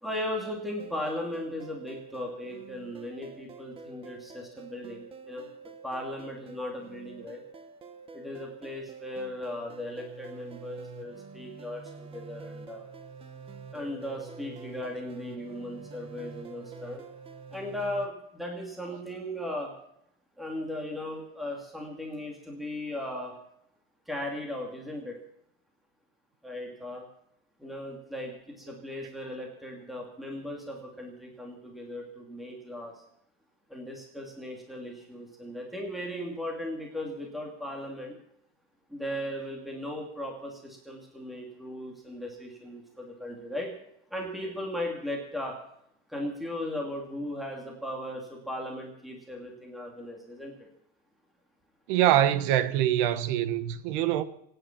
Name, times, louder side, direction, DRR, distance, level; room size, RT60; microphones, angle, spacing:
voice 1, 0.0-5.4 5.8-7.4 8.1-12.9 13.7-17.0 17.5-19.7 20.4-23.3 24.1-25.2 26.4-27.0 27.6-33.0 33.7-38.2 38.9-43.7 44.1-45.6 46.1-50.5, left 1 dB, ahead, 2.4 m, -37 dB
sound 1, 0.8-18.1, right 4 dB, 15° right, 0.9 m, -47 dB
voice 2, 51.9-54.2, right 12 dB, 55° right, 1.1 m, -24 dB
24.5 x 9.9 x 5.9 m
supercardioid pair, 170°, 32 cm